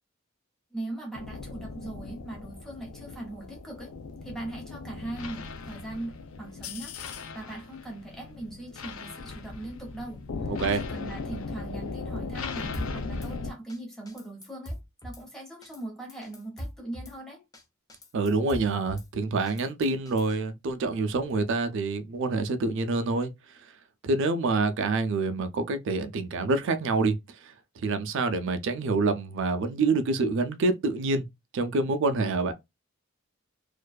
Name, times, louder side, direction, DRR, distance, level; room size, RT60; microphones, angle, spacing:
voice 1, 0.7-3.9 4.2-17.4, right 2 dB, ahead, 0.9 m, -40 dB
sound 1, 1.1-13.5, left 4 dB, 85° left, 0.4 m, -38 dB
voice 2, 10.5-10.8 18.1-23.3 24.0-27.2 27.4-31.3 31.5-32.5, right 3 dB, 65° right, 0.4 m, -27 dB
Drum kit / Snare drum, 12.7-13.3 13.7-13.8 14.1-15.2 15.6-15.8 16.1-17.2 17.5-17.6 17.9-19.1 19.5-20.4, equal, 20° left, 0.5 m, -41 dB
2.5 x 2.2 x 2.2 m
head